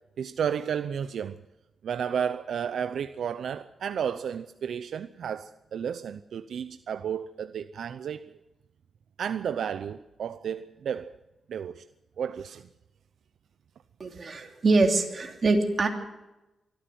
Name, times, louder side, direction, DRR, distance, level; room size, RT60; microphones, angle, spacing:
voice 1, 0.2-1.4 1.8-8.4 9.2-11.1 11.5-11.8 12.2-12.7 14.1-14.2, right 8 dB, 70° right, 0.6 m, -32 dB
voice 2, 14.0-15.9, right 3 dB, 40° right, 3.1 m, -24 dB
24.0 x 14.0 x 7.7 m
wide cardioid pair, 140°, 0 cm